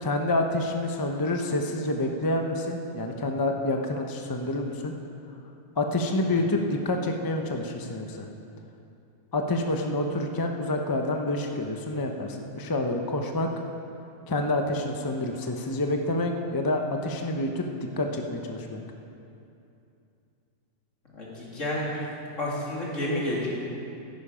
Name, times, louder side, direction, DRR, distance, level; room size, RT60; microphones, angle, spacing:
voice 1, 0.0-4.9 5.8-8.3 9.3-13.5 14.3-17.6 18.0-18.8, left 2 dB, 20° left, 3 dB, 0.6 m, -28 dB
voice 2, 6.2-6.5 21.1-22.1 22.4-23.5, left 1 dB, 70° left, -5 dB, 2.8 m, -31 dB
13.0 x 10.5 x 5.0 m, 2.7 s
omnidirectional pair, 1.4 m